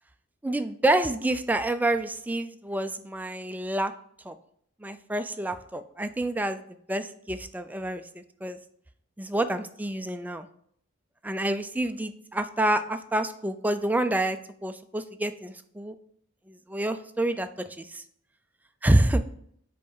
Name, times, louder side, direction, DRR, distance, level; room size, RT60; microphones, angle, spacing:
voice 1, 0.4-3.9 4.2-4.3 4.8-6.6 6.9-8.6 9.2-10.5 11.2-14.4 14.6-15.9 16.5-18.0 18.8-19.2, right 1 dB, 10° right, 9 dB, 0.3 m, -28 dB
5.3 x 4.6 x 5.4 m, 0.66 s
head